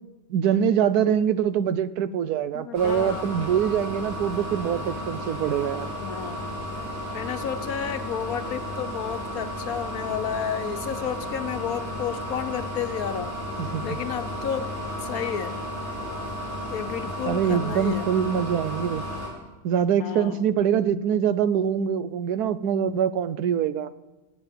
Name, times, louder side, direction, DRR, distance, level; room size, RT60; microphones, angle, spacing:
voice 1, 0.3-5.9 13.6-14.0 17.3-19.1 19.6-23.9, right 8 dB, 80° right, 15 dB, 1.2 m, -24 dB
voice 2, 2.5-3.3 6.0-6.5 7.1-13.3 13.8-14.7 15.0-15.6 16.7-18.1 20.0-20.5, left 8 dB, 70° left, 10 dB, 1.3 m, -31 dB
sound 1, 2.7-19.3, equal, 30° right, 5.4 m, -33 dB
18.0 x 7.7 x 8.3 m, 1.1 s
omnidirectional pair, 1.6 m